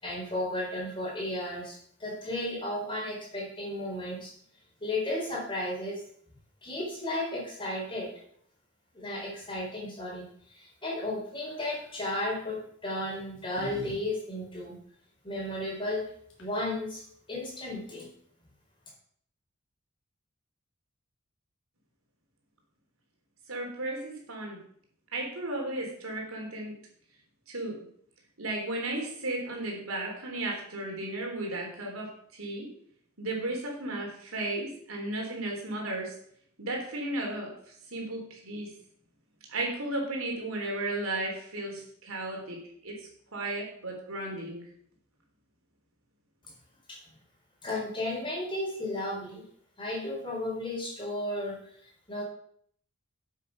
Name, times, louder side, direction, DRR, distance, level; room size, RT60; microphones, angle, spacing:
voice 1, 0.0-4.3 4.8-6.0 6.6-8.1 8.9-14.8 15.2-16.0 16.4-17.0 17.3-18.1 46.9-47.0 47.6-49.4 49.8-51.6 51.8-52.2, left 1 dB, 25° left, -3 dB, 4.3 m, -34 dB
sound 1, 11.5-11.9 12.9-14.0 14.2-14.3 16.0-16.1 16.3-16.7, right 1 dB, 60° left, 3.0 m, -45 dB
voice 2, 23.5-24.6 25.1-26.7 27.5-27.8 28.4-32.7 33.2-36.2 36.6-38.7 39.5-44.6, right 2 dB, 75° right, 0 dB, 3.4 m, -34 dB
8.5 x 7.7 x 6.0 m, 0.64 s
head